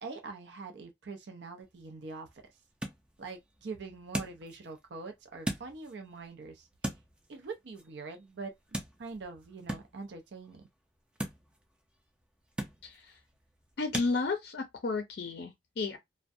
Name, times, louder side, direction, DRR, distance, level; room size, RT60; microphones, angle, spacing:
voice 1, 0.0-2.4 3.2-6.7 7.3-8.5 9.0-10.6, right 4 dB, 70° right, 0.5 m, -43 dB
sound 1, 1.6-14.1, right 1 dB, 5° right, 0.4 m, -43 dB
voice 2, 12.8-13.2 13.8-16.0, left 3 dB, 60° left, 0.5 m, -33 dB
2.4 x 2.1 x 2.6 m
head